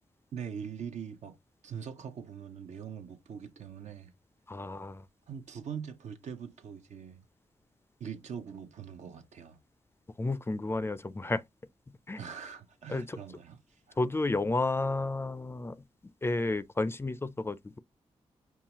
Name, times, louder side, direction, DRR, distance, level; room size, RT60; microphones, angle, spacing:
voice 1, 0.3-1.4 1.6-4.1 5.3-7.2 8.0-9.6 12.2-14.0, right 7 dB, 75° right, 0.7 m, -42 dB
voice 2, 4.5-5.0 10.2-11.4 12.1-12.2 12.9-13.2 14.0-15.8 16.2-17.8, left 2 dB, 20° left, 0.3 m, -31 dB
5.5 x 2.3 x 2.9 m
cardioid pair, 65°, 12 cm